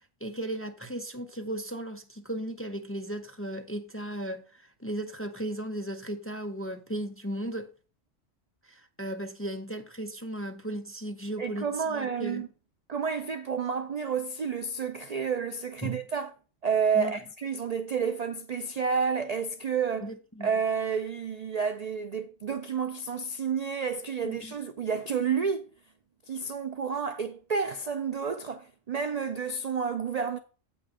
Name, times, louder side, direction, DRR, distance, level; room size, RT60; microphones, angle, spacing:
voice 1, 0.2-7.7 8.6-12.4 15.8-16.0 16.9-17.1 20.0-20.5 24.2-24.6, right 1 dB, 15° left, 0.5 m, -36 dB
voice 2, 11.4-12.5 12.9-16.3 16.6-20.1 20.4-25.7 26.3-30.4, right 6 dB, 65° right, 0.4 m, -30 dB
8.3 x 5.5 x 4.9 m
omnidirectional pair, 1.3 m